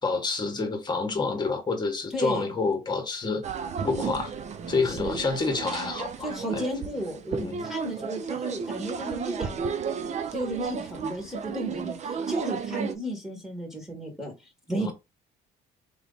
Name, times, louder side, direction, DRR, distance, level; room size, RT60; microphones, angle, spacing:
voice 1, 0.0-3.4 3.8-4.3 4.7-6.6 7.3-7.7 14.8-14.9, left 4 dB, 25° left, 1.5 m, -28 dB
voice 2, 2.1-2.5 4.9-5.2 6.2-9.6 10.3-14.3 14.7-14.9, equal, 5° right, 1.8 m, -33 dB
sound 1, 3.4-12.9, right 6 dB, 40° right, 0.7 m, -33 dB
3.8 x 3.2 x 4.0 m
cardioid pair, 110°, 17 cm